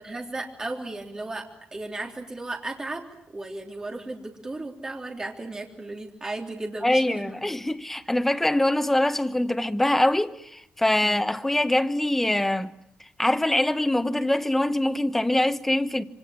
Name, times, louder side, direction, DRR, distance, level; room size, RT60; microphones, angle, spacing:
voice 1, 0.0-7.6 11.0-11.2, right 2 dB, 20° right, 3.4 m, -35 dB
voice 2, 6.8-12.7 13.2-16.0, left 1 dB, 5° left, 1.0 m, -23 dB
26.5 x 25.0 x 8.7 m
wide cardioid pair, 175°, 4 cm